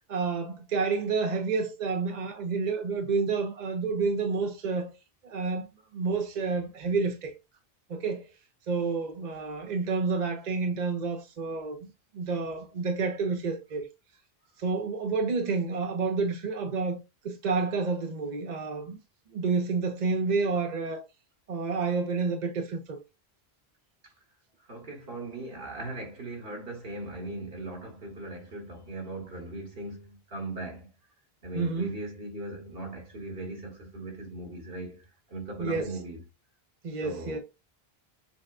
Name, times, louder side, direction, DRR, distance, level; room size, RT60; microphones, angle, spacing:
voice 1, 0.1-4.9 5.2-5.7 5.9-7.3 7.9-8.3 8.7-11.8 12.1-13.9 14.6-17.0 17.2-19.0 19.3-21.0 21.5-23.0 31.5-31.9 35.6-35.9 36.8-37.4, right 4 dB, 50° right, 0.7 m, -29 dB
voice 2, 24.6-30.9 31.4-36.2 36.9-37.4, right 2 dB, 70° right, 1.6 m, -39 dB
6.2 x 2.1 x 2.4 m
omnidirectional pair, 1.0 m